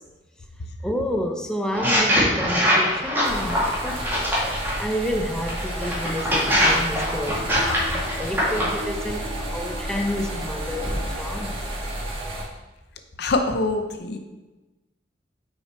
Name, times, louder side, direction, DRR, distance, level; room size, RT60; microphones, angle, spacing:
voice 1, 0.8-7.7 7.9-11.6, equal, 5° left, 3 dB, 0.5 m, -30 dB
sound 1, 1.7-4.8 5.5-8.8, equal, 10° right, 1.9 m, -22 dB
sound 2, 3.2-12.4, right 1 dB, 30° right, 1.5 m, -31 dB
sound 3, 5.8-11.9, left 1 dB, 60° right, 2.4 m, -41 dB
voice 2, 13.2-14.2, left 2 dB, 65° left, 6 dB, 0.6 m, -24 dB
6.0 x 5.0 x 4.2 m, 1.1 s
head